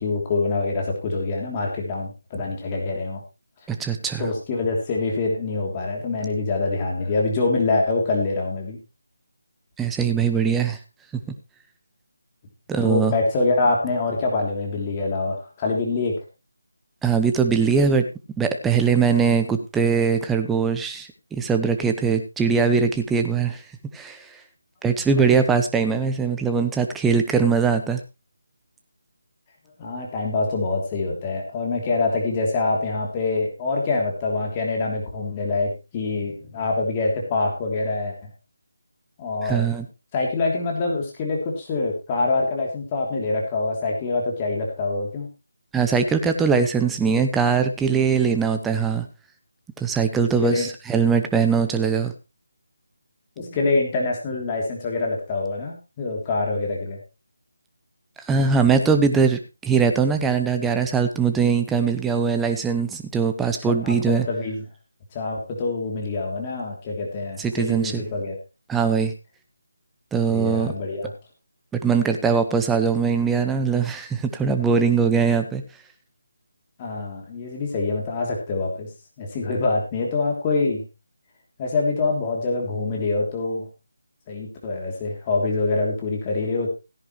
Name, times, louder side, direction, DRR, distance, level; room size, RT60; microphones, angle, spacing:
voice 1, 0.0-3.2 4.2-8.8 12.8-16.2 25.1-25.2 29.8-38.1 39.2-39.7 40.1-45.3 50.4-50.7 53.4-57.0 63.6-64.6 65.1-68.4 70.3-71.1 76.8-78.9 79.2-80.8 81.6-83.7 84.3-86.7, left 3 dB, 20° left, 0 dB, 3.1 m, -25 dB
voice 2, 3.7-4.3 9.8-10.8 12.7-13.1 17.0-18.1 18.4-23.6 23.9-24.4 24.8-28.0 39.4-39.9 45.7-49.1 49.8-52.1 58.3-64.3 67.4-68.0 68.7-69.1 70.1-70.7 71.8-75.6, right 6 dB, 5° right, 6 dB, 0.9 m, -21 dB
16.5 x 10.5 x 3.2 m, 0.27 s
figure-of-eight pair, 165°, 0 cm